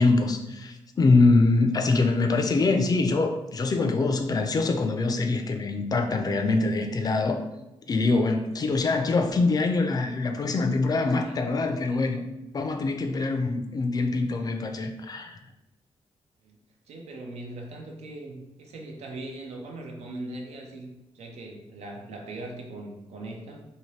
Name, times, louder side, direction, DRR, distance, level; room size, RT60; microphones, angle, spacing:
voice 1, 0.0-7.4 7.9-12.3 12.5-15.4, left 3 dB, 35° left, 5 dB, 0.4 m, -24 dB
voice 2, 11.1-11.5 16.4-16.6 16.9-23.6, right 2 dB, 90° right, 1 dB, 0.6 m, -40 dB
2.8 x 2.6 x 3.1 m, 0.96 s
cardioid pair, 105°, 11 cm